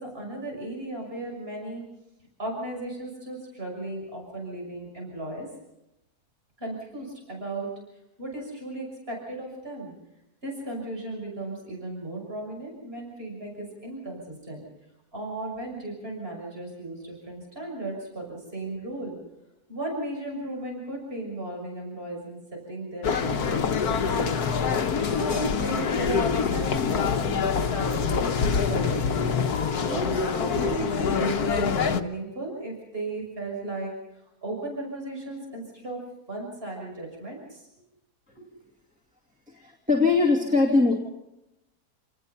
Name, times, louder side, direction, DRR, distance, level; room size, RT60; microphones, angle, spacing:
voice 1, 0.0-1.8 2.4-5.5 6.6-7.7 8.2-9.9 10.4-14.6 15.1-19.2 19.7-24.4 25.0-33.9 34.4-36.0 36.3-37.6 38.4-38.5, right 2 dB, 35° right, 0 dB, 6.4 m, -35 dB
sound 1, 23.0-32.0, left 6 dB, 70° left, 1.5 m, -25 dB
voice 2, 39.5-40.9, left 3 dB, 5° right, -3 dB, 2.4 m, -21 dB
28.0 x 19.5 x 5.7 m, 0.90 s
omnidirectional pair, 1.7 m